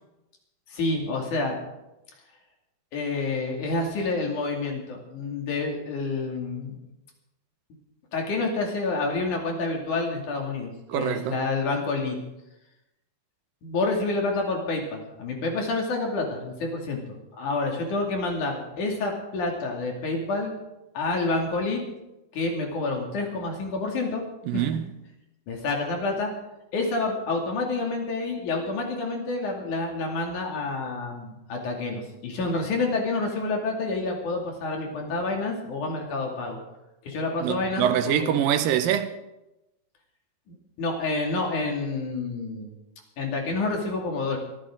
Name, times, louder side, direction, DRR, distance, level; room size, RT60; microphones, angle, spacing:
voice 1, 0.7-1.6 2.9-6.8 8.1-12.2 13.6-17.0 17.3-20.5 20.9-21.8 22.3-24.2 24.5-24.6 25.5-26.3 26.7-36.6 37.1-38.3 40.5-42.7 43.2-44.4, left 3 dB, 60° left, 3.8 m, -28 dB
voice 2, 10.9-11.4 24.5-24.9 37.4-39.1, right 9 dB, 80° right, 2.5 m, -24 dB
22.5 x 14.5 x 3.8 m
omnidirectional pair, 4.1 m